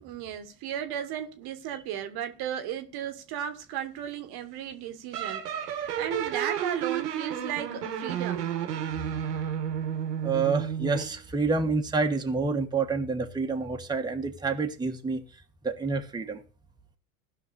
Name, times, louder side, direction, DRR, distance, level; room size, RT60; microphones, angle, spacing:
voice 1, 0.0-8.5, right 9 dB, 50° right, 1.3 m, -35 dB
sound 1, 5.1-11.2, right 9 dB, 85° right, 1.6 m, -31 dB
voice 2, 10.2-15.2 15.6-16.4, right 4 dB, 10° right, 1.3 m, -28 dB
16.0 x 5.9 x 4.1 m
hypercardioid pair, 90°, 47 cm